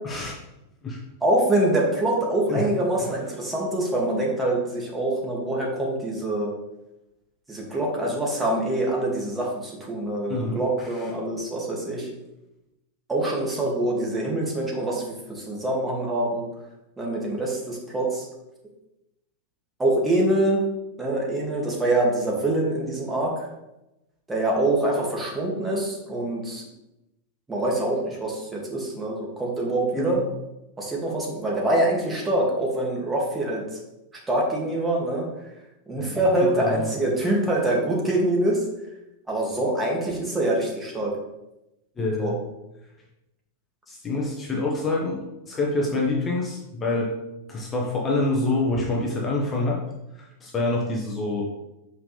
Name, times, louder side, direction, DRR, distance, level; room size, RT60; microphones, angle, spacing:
voice 1, 1.2-6.5 7.5-12.1 13.1-16.5 17.0-18.3 19.8-20.6 21.0-23.5 24.3-26.7 27.5-30.2 30.8-33.8 34.3-35.3 35.9-38.6 39.3-41.1 42.2-42.3, right 1 dB, 15° right, -3 dB, 2.4 m, -25 dB
voice 2, 10.3-11.1 30.0-30.2 36.0-36.9 37.2-37.3 42.0-42.4 43.9-47.1 47.5-49.8 50.1-51.5, left 2 dB, 20° left, -2 dB, 1.4 m, -27 dB
7.8 x 5.5 x 3.4 m, 0.93 s
figure-of-eight pair, 90°, 0 cm